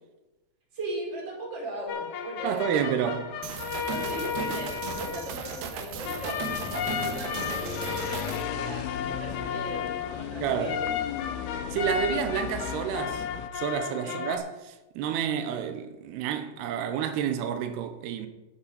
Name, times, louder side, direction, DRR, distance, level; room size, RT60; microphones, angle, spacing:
voice 1, 0.7-2.8 3.9-6.4 6.8-11.0 14.0-14.2, right 1 dB, 30° right, 3.7 m, -38 dB
sound 1, 1.9-14.4, left 8 dB, 65° left, 2.1 m, -34 dB
voice 2, 2.4-3.2 10.4-10.8 11.7-13.2 13.5-18.3, right 8 dB, 90° right, 2.8 m, -29 dB
sound 2, 3.4-8.4, right 6 dB, 75° right, 2.7 m, -36 dB
sound 3, 6.2-13.5, left 10 dB, 90° left, 2.7 m, -37 dB
9.7 x 8.5 x 5.6 m
omnidirectional pair, 4.6 m